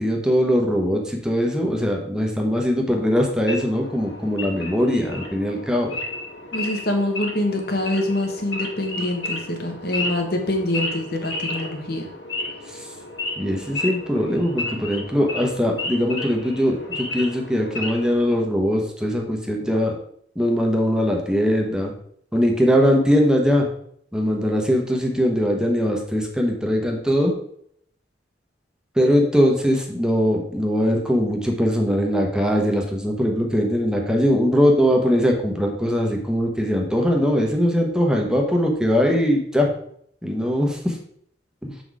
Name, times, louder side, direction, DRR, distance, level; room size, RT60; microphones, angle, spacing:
voice 1, 0.0-5.9 12.7-12.9 13.4-19.9 20.4-21.9 22.3-23.7 24.1-27.3 29.0-39.7 40.2-41.0 41.6-41.7, equal, 5° right, 1 dB, 0.9 m, -21 dB
Wild animals / Idling, 3.4-18.2, left 2 dB, 80° left, 1.6 m, -32 dB
voice 2, 6.5-12.0, left 1 dB, 55° left, 3 dB, 1.3 m, -25 dB
6.8 x 4.0 x 4.7 m, 0.68 s
head